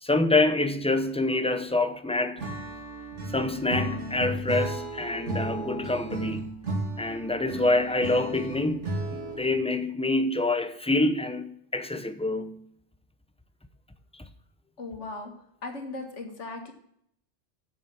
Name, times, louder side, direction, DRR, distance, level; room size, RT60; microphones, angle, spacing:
voice 1, 0.0-2.4 3.3-6.6 7.0-12.6, left 2 dB, 5° left, 0.5 m, -26 dB
Acoustic guitar / Strum, 2.4-9.6, right 2 dB, 90° right, 2.6 m, -34 dB
voice 2, 14.8-15.3 15.6-16.7, left 3 dB, 80° left, 2.0 m, -37 dB
8.1 x 7.2 x 6.0 m
omnidirectional pair, 1.2 m